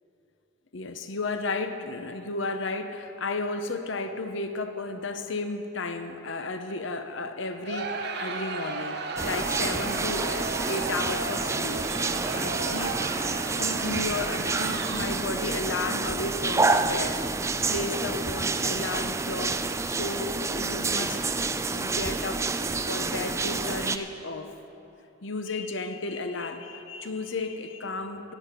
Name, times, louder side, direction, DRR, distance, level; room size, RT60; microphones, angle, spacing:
voice 1, 0.7-11.8 12.3-21.2 21.7-24.5 25.2-28.3, left 3 dB, 65° left, 8 dB, 0.9 m, -33 dB
Crowd, 7.6-15.4, right 3 dB, 55° right, 0.9 m, -34 dB
sound 1, 9.2-24.0, right 3 dB, 15° right, 0.3 m, -28 dB
16.5 x 7.6 x 6.8 m, 2.9 s
head